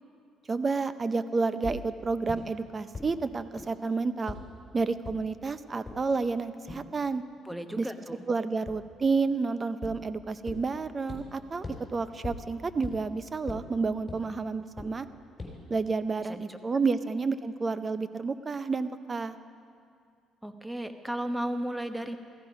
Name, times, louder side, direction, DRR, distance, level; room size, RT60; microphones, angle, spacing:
voice 1, 0.5-4.4 4.7-7.2 7.8-7.9 8.3-15.1 15.7-19.4, right 4 dB, 30° right, 13 dB, 0.6 m, -30 dB
sound 1, 1.6-1.7 2.3-2.4 2.9-3.0 3.6-3.7 4.3-4.4 5.0-5.1 5.9-6.0 6.7-6.8 8.7-8.8 9.8-9.9 10.5-10.6 11.1-11.2 11.6-11.7 12.2-12.3 12.8-12.9 13.5-13.6 14.1-14.2 14.8-14.9 15.4-15.5, left 3 dB, 20° left, 4.2 m, -37 dB
voice 2, 7.4-8.2 16.2-16.6 17.0-17.1 20.4-22.2, right 1 dB, 5° right, 8 dB, 1.0 m, -35 dB
15.5 x 14.5 x 5.2 m, 2.3 s
cardioid pair, 95°, 0 cm